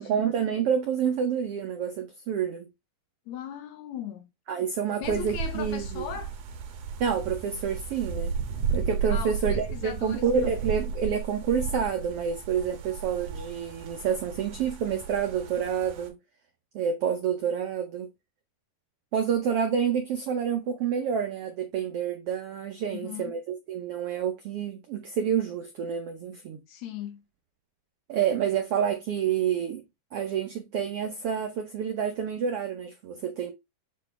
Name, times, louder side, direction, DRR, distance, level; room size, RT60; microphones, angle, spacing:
voice 1, 0.0-2.7 4.5-6.0 7.0-8.3 8.7-16.2 16.7-18.1 19.1-26.6 28.1-29.8 30.1-33.5, right 7 dB, 80° right, 1.3 m, -28 dB
voice 2, 3.3-4.3 5.0-6.3 9.1-10.5 22.9-23.3 26.7-27.2, left 9 dB, 70° left, 1.9 m, -38 dB
sound 1, 5.0-16.1, right 6 dB, 65° right, 1.9 m, -34 dB
7.4 x 4.2 x 3.3 m
omnidirectional pair, 3.8 m